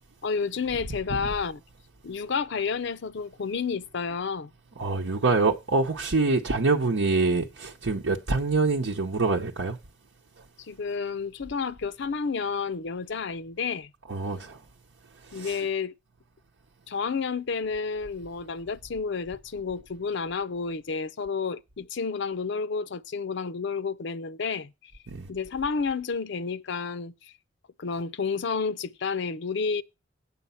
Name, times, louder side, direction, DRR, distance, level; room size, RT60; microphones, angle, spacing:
voice 1, 0.2-1.6 2.0-4.5 10.6-13.9 15.3-15.9 16.9-24.9 25.3-27.1 27.8-29.8, left 5 dB, 65° left, 0.6 m, -30 dB
voice 2, 4.8-9.8 14.1-14.6 15.3-15.6 25.1-25.3, right 3 dB, 75° right, 0.9 m, -25 dB
8.6 x 7.0 x 5.6 m
head